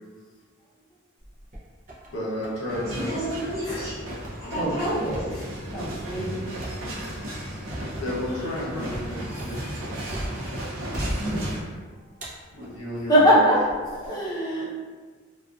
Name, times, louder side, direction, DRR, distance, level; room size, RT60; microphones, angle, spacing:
sound 1, 1.2-2.1 2.4-3.1 3.4-3.6 4.1-10.6 10.9-11.8 12.2-13.1 13.7-14.1, equal, 40° right, 0.5 m, -37 dB
voice 1, 2.1-3.1 7.9-9.6 12.5-13.4, left 1 dB, 65° left, -6 dB, 0.8 m, -32 dB
sound 2, 2.7-11.6, right 1 dB, 85° right, 0.6 m, -35 dB
voice 2, 2.8-4.0 4.4-5.0, right 1 dB, 15° right, -13 dB, 1.1 m, -32 dB
voice 3, 4.6-6.5 8.2-8.5 8.7-8.8 9.4-9.6 11.2-11.4 13.1-13.6 13.9-14.6, equal, 20° left, -8 dB, 0.7 m, -24 dB
2.4 x 2.3 x 2.3 m, 1.5 s
head